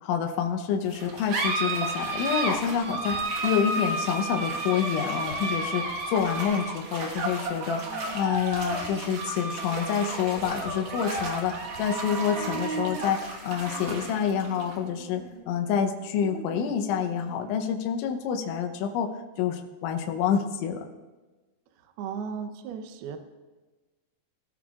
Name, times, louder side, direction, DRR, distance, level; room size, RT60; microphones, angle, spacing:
voice 1, 0.0-19.1 19.4-20.9, left 8 dB, 75° left, 4 dB, 3.1 m, -28 dB
sound 1, 0.9-17.8, right 2 dB, 65° right, 2.1 m, -33 dB
sound 2, 4.6-6.3 6.6-7.5 7.7-9.1 9.4-11.1 11.4-12.9, right 3 dB, 45° right, 2.7 m, -41 dB
voice 2, 22.0-23.2, right 6 dB, 90° right, 7 dB, 2.2 m, -35 dB
21.0 x 14.0 x 2.5 m, 1.2 s
omnidirectional pair, 5.8 m